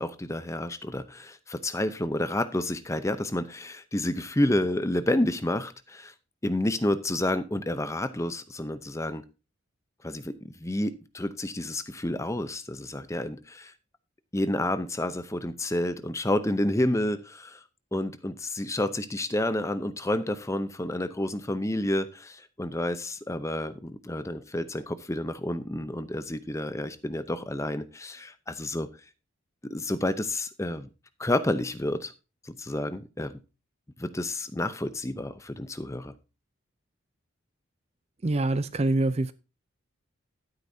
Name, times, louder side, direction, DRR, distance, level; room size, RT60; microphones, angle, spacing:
voice 1, 0.0-6.1 6.4-9.2 10.0-13.7 14.3-17.6 17.9-28.9 29.6-30.9 31.2-32.1 32.4-33.3 34.0-36.1, left 1 dB, 15° left, 0.7 m, -30 dB
voice 2, 38.2-39.3, right 2 dB, 30° right, 0.5 m, -25 dB
12.0 x 9.6 x 2.7 m
head